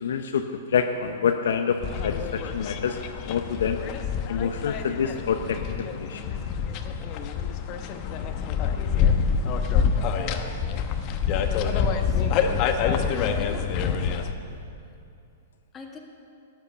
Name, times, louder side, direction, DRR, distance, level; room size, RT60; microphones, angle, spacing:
voice 1, 0.0-3.0 3.3-3.8 4.3-6.2, left 7 dB, 70° left, 6 dB, 0.7 m, -27 dB
sound 1, 1.8-14.3, left 6 dB, 40° left, 1.0 m, -26 dB
voice 2, 11.9-13.7 15.7-16.0, left 5 dB, 20° left, 1 dB, 1.7 m, -41 dB
13.0 x 9.2 x 7.1 m, 2.6 s
figure-of-eight pair, 110°, 0 cm